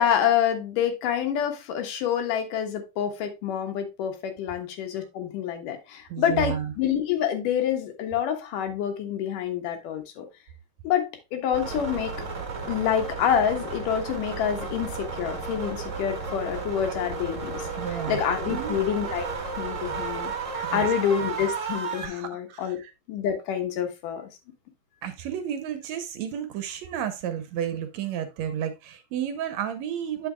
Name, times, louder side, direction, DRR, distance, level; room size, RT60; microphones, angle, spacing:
voice 1, 0.0-10.3 10.8-12.1 12.7-19.3 19.6-22.8 23.1-24.3, left 9 dB, 85° left, 2.9 m, -27 dB
voice 2, 6.1-6.7 17.7-18.2 18.5-18.8 19.8-20.0 20.6-20.9 22.0-22.9 25.0-30.3, right 9 dB, 70° right, 1.8 m, -32 dB
sound 1, 11.5-22.1, right 5 dB, 40° right, 1.1 m, -33 dB
8.7 x 7.3 x 2.2 m
omnidirectional pair, 3.6 m